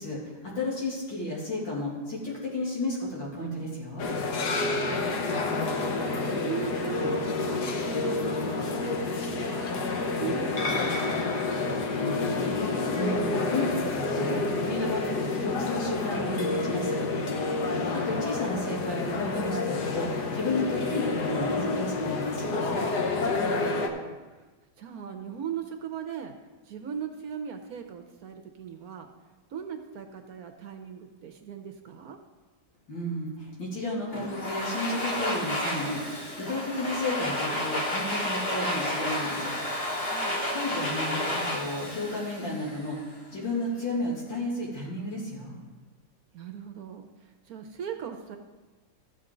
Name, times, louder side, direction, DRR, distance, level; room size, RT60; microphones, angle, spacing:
voice 1, 0.0-4.1 12.9-17.0 17.9-22.8 32.9-39.5 40.5-43.0 43.3-45.6, left 1 dB, 85° left, -5 dB, 3.3 m, -32 dB
sound 1, 4.0-23.9, left 3 dB, 65° left, 1.4 m, -29 dB
voice 2, 4.8-9.6 10.2-12.5 17.6-17.9 23.3-24.2 24.8-26.3 26.7-29.1 29.5-32.2 40.1-40.4 46.3-48.4, right 8 dB, 60° right, 5 dB, 1.1 m, -39 dB
Domestic sounds home sounds, 34.1-43.0, left 1 dB, 35° left, 1.8 m, -31 dB
14.5 x 7.5 x 3.9 m, 1.3 s
omnidirectional pair, 2.0 m